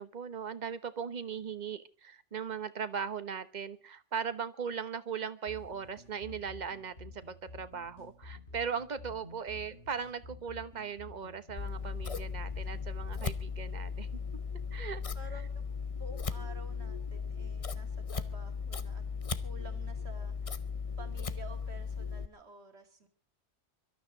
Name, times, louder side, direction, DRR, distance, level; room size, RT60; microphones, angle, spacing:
voice 1, 0.0-14.2 14.7-15.0, right 6 dB, 40° right, 12 dB, 1.1 m, -38 dB
sound 1, 5.5-13.5, left 4 dB, 65° left, 6.7 m, -51 dB
Scissors, 11.6-22.3, left 5 dB, 35° left, 0.8 m, -37 dB
voice 2, 15.2-15.5 16.0-19.0 19.4-20.6 21.0-23.1, right 2 dB, 65° right, 8 dB, 2.6 m, -51 dB
24.5 x 12.5 x 4.0 m, 0.38 s
omnidirectional pair, 1.2 m